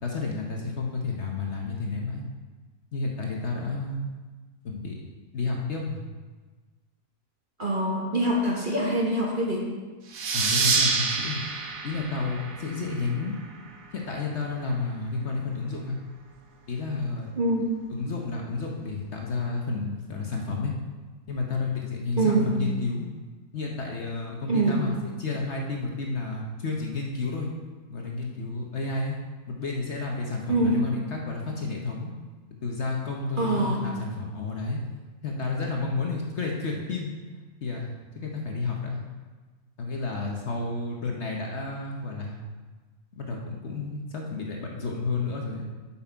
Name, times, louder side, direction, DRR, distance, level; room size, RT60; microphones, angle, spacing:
voice 1, 0.0-2.3 2.9-4.1 4.6-4.9 5.3-6.0 10.3-11.4 11.8-13.3 13.9-16.0 16.7-17.3 17.9-20.7 21.3-23.1 23.5-27.5 27.9-29.2 29.5-32.1 32.6-34.8 35.2-37.1 37.6-39.0 39.8-42.4 43.2-45.7, left 3 dB, 50° left, 0 dB, 1.0 m, -31 dB
voice 2, 7.6-9.7 17.4-17.7 22.2-22.5 24.5-24.9 30.5-30.8 33.4-33.8, right 2 dB, 35° right, -2 dB, 1.0 m, -24 dB
sound 1, 10.1-13.4, right 4 dB, 85° right, 1.4 m, -27 dB
7.6 x 6.0 x 4.4 m, 1.3 s
omnidirectional pair, 1.7 m